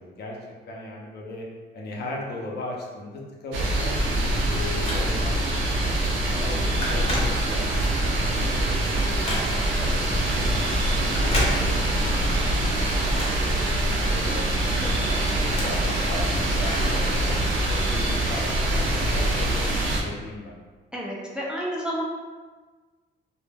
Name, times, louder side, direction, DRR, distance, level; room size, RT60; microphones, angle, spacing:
voice 1, 0.0-1.5 1.7-5.9 6.4-10.4 10.9-13.7 14.1-17.3 17.7-20.6, left 1 dB, 60° left, -2 dB, 0.6 m, -38 dB
sound 1, 3.5-20.0, right 1 dB, 85° right, 0.5 m, -24 dB
Telephone, 4.4-5.4 5.9-6.1 6.4-7.9 8.3-9.8 11.0-12.1 12.4-14.2 14.6-17.2 17.5-17.6 18.4-18.5, left 1 dB, 30° left, 0.8 m, -33 dB
voice 2, 14.8-15.3 20.9-22.0, equal, 5° right, -5 dB, 0.4 m, -31 dB
2.1 x 2.0 x 3.2 m, 1.4 s
cardioid pair, 120°, 19 cm